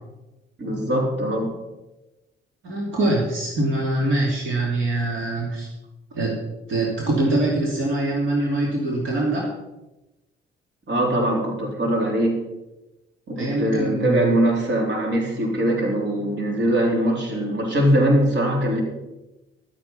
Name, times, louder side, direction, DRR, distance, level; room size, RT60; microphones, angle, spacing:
voice 1, 0.6-1.5 10.9-12.4 13.3-18.8, right 1 dB, 60° right, 0 dB, 3.7 m, -22 dB
voice 2, 2.6-5.7 6.1-6.4 6.7-9.4 13.4-14.3, right 2 dB, 80° right, -2 dB, 2.8 m, -23 dB
12.0 x 8.5 x 5.6 m, 1.0 s
cardioid pair, 90°, 20 cm